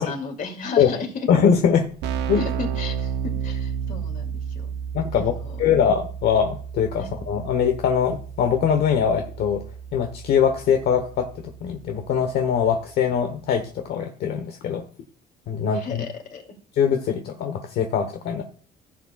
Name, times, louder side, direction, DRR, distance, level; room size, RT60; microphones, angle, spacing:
voice 1, 0.0-1.3 2.3-4.7 5.1-5.6 7.0-7.1 15.7-16.4, left 5 dB, 50° left, 4 dB, 2.8 m, -34 dB
voice 2, 1.3-1.9 2.3-2.4 4.9-5.3 5.6-9.6 9.9-11.3 11.6-14.8 15.5-16.0 16.8-18.4, left 7 dB, 70° left, 5 dB, 1.1 m, -22 dB
Keyboard (musical), 2.0-12.3, right 8 dB, 85° right, 0.7 m, -32 dB
15.5 x 7.4 x 2.4 m, 0.42 s
cardioid pair, 110°, 17 cm